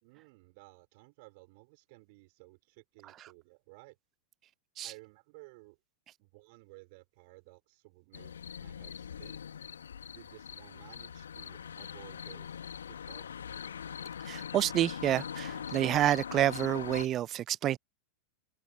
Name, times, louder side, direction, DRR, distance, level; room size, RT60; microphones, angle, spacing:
voice 1, 0.0-4.0 4.8-5.8 6.2-9.4 10.1-13.4, right 27 dB, 50° right, 3.5 m, -56 dB
sound 1, 8.1-17.1, left 8 dB, 70° left, 2.3 m, -42 dB
voice 2, 14.3-17.8, right 12 dB, 30° right, 0.3 m, -29 dB
figure-of-eight pair, 90°, 0 cm